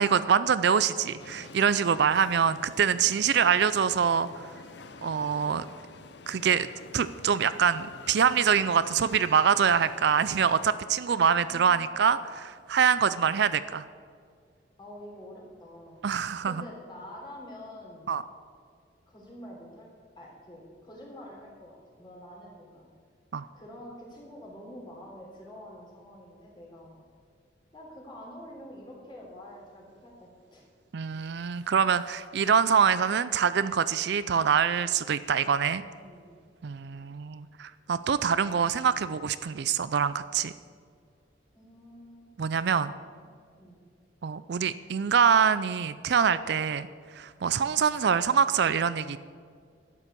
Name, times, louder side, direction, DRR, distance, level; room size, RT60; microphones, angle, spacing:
voice 1, 0.0-4.3 5.0-5.6 6.3-6.7 6.9-13.9 16.0-16.6 18.1-18.2 23.3-23.5 30.9-35.8 36.6-40.5 42.4-42.9 44.2-46.9 47.1-49.2, right 7 dB, 60° right, 14 dB, 0.4 m, -25 dB
sound 1, 1.2-10.8, left 4 dB, 65° left, 0.7 m, -48 dB
voice 2, 11.4-12.1 14.8-16.0 16.4-18.2 19.1-19.9 20.2-22.9 23.5-27.1 27.7-30.7 35.9-36.5 41.5-42.3 43.6-43.8, left 1 dB, 25° left, -3 dB, 3.6 m, -47 dB
11.5 x 8.5 x 6.8 m, 2.1 s
head